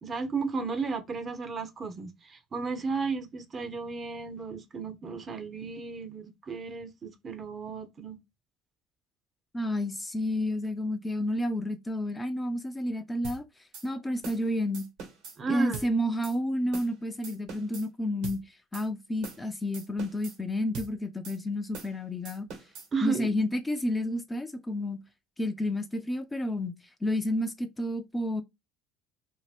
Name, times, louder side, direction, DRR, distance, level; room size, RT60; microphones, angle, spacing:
voice 1, 0.0-8.2 15.4-15.9 22.9-23.3, right 5 dB, 35° right, 0.6 m, -34 dB
voice 2, 9.5-13.5 13.8-14.8 15.5-18.4 18.7-22.5 23.0-25.0 25.4-26.8 27.0-28.4, left 1 dB, 15° left, 0.4 m, -30 dB
sound 1, 13.2-13.4 13.7-13.9 14.2-14.4 14.7-15.4 15.7-15.9 16.2-16.4 16.7-16.9 17.2-17.9 18.2-18.4 18.7-18.9 19.2-19.4 19.7-20.4 20.7-20.9 21.2-21.4 21.7-22.0 22.3-22.9, right 4 dB, 70° right, 1.2 m, -42 dB
2.6 x 2.1 x 3.2 m
hypercardioid pair, 80°, 0 cm